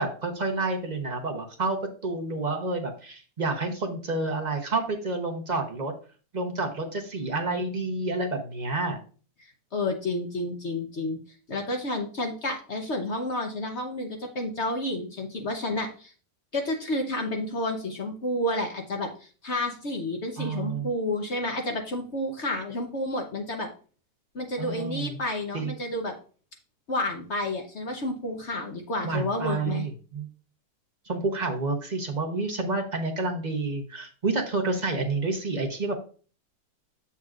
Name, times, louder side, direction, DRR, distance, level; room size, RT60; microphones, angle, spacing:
voice 1, 0.0-5.9 6.3-9.0 20.4-20.9 24.6-25.2 25.5-25.7 29.0-30.3 31.1-35.9, right 3 dB, 35° right, 2 dB, 0.7 m, -29 dB
voice 2, 9.7-11.2 11.5-16.1 16.5-23.7 24.3-26.1 26.9-29.9, left 1 dB, 50° left, 3 dB, 0.9 m, -30 dB
7.7 x 7.0 x 2.4 m, 0.40 s
omnidirectional pair, 1.9 m